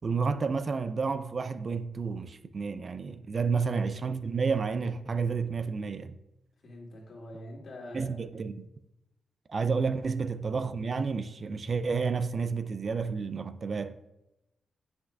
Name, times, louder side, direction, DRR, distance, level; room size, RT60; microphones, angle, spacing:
voice 1, 0.0-6.2 7.9-8.7 9.5-14.0, right 5 dB, 45° right, 0.3 m, -30 dB
voice 2, 6.6-8.1, left 1 dB, 60° left, 2.2 m, -44 dB
7.7 x 5.9 x 2.3 m
cardioid pair, 85°, 0 cm